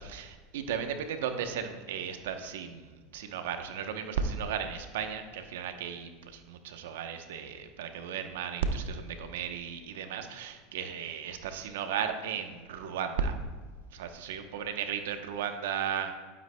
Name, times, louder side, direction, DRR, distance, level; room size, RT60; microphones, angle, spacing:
voice 1, 0.0-13.4 13.9-16.1, right 7 dB, 85° right, 7 dB, 0.8 m, -35 dB
11.5 x 9.3 x 2.2 m, 1.4 s
supercardioid pair, 115°, 0 cm